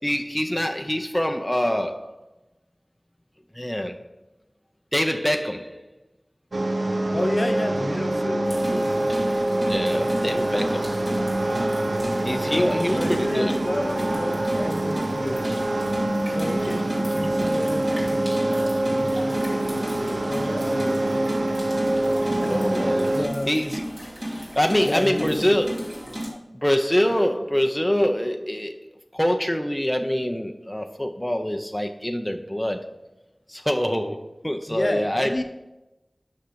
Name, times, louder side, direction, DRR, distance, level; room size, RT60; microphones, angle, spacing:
voice 1, 0.0-2.1 3.5-4.0 4.9-5.9 9.6-11.0 11.4-11.8 12.2-13.6 15.4-15.6 16.3-16.4 22.4-23.2 23.5-23.8 24.3-26.2 26.5-28.8 29.1-32.9 33.5-35.4, equal, 10° left, 4 dB, 0.6 m, -25 dB
sound 1, 6.5-23.3, right 1 dB, 75° right, 0.7 m, -25 dB
voice 2, 7.1-9.1 11.9-12.1 12.4-15.5 16.3-21.7 22.3-22.6 23.0-23.7 24.8-25.6 34.7-35.4, left 1 dB, 50° left, 5 dB, 0.9 m, -31 dB
sound 2, 8.4-26.3, equal, 25° right, 2.6 m, -34 dB
6.4 x 5.8 x 5.1 m, 0.97 s
wide cardioid pair, 50°, 0 cm